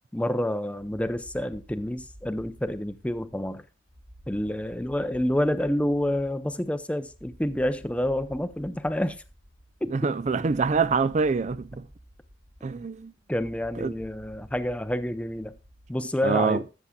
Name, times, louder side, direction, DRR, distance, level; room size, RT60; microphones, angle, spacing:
voice 1, 0.1-3.6 4.3-9.2 9.8-10.0 13.3-15.6 15.9-16.6, left 1 dB, 5° left, 0.6 m, -28 dB
sound 1, 0.8-16.3, equal, 55° right, 3.0 m, -52 dB
voice 2, 9.9-11.9 12.6-13.1 13.8-13.9 16.2-16.6, right 4 dB, 40° right, 0.4 m, -25 dB
20.5 x 7.2 x 2.3 m
head